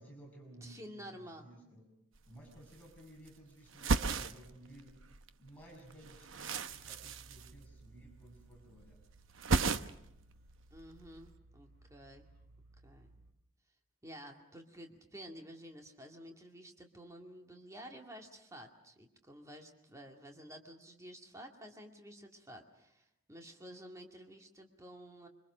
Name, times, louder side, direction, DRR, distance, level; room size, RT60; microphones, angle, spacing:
voice 1, 0.0-1.9 2.3-5.0 5.4-9.0, right 1 dB, 5° left, -2 dB, 6.4 m, -55 dB
voice 2, 0.6-1.5 10.7-12.3 12.8-13.1 14.0-25.3, equal, 15° right, 2 dB, 2.3 m, -51 dB
sound 1, 2.2-2.3 2.5-3.3 3.7-5.3 5.6-8.1 8.4-8.9 9.1-10.2 10.5-11.3, right 4 dB, 65° right, 0.9 m, -35 dB
sound 2, 6.7-13.3, right 3 dB, 45° right, 3.0 m, -61 dB
26.0 x 25.0 x 6.3 m, 0.81 s
head